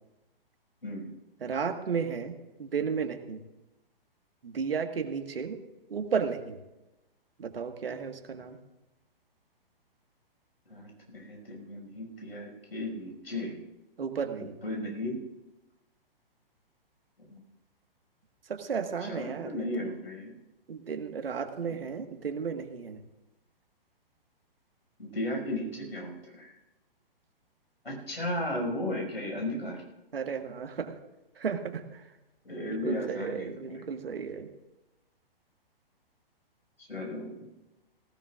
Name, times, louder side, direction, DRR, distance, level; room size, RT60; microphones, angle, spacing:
voice 1, 1.4-3.4 4.4-5.6 5.9-6.6 7.4-8.6 14.0-14.5 18.5-19.8 20.7-23.0 30.1-30.9 31.3-32.1 32.6-34.5, right 6 dB, 75° right, 6 dB, 1.7 m, -33 dB
voice 2, 10.7-13.6 14.6-15.2 17.2-17.4 19.0-20.3 21.7-21.8 25.0-26.6 27.8-29.8 32.4-33.8 36.8-37.5, left 1 dB, 90° left, 1 dB, 6.1 m, -35 dB
19.0 x 16.0 x 2.5 m, 0.99 s
figure-of-eight pair, 125°, 29 cm